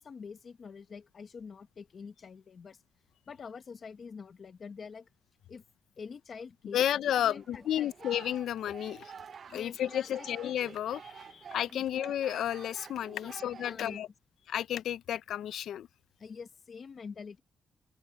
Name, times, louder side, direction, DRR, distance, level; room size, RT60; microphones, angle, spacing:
voice 1, 0.0-2.8 3.3-5.1 5.5-5.6 6.0-8.1 9.5-10.3 10.6-10.8 11.7-11.9 13.1-13.3 13.6-14.1 16.2-17.4, left 5 dB, 40° left, 0.8 m, -46 dB
voice 2, 6.7-9.1 9.5-14.1 14.5-15.9, left 11 dB, 85° left, 0.4 m, -32 dB
sound 1, 7.3-14.0, right 6 dB, 45° right, 0.5 m, -50 dB
sound 2, 7.5-12.3, left 2 dB, 10° left, 5.3 m, -69 dB
open air
wide cardioid pair, 165°, 0 cm